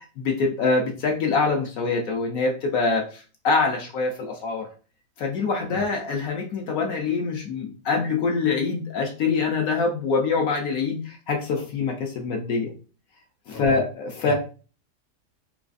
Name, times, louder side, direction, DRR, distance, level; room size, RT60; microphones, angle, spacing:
voice 1, 0.2-4.7 5.2-12.7 13.5-14.3, left 4 dB, 70° left, 1 dB, 1.0 m, -25 dB
voice 2, 5.7-5.8 13.5-13.8 14.2-14.3, right 1 dB, 35° left, -1 dB, 0.7 m, -37 dB
4.0 x 2.4 x 2.4 m, 0.36 s
omnidirectional pair, 1.7 m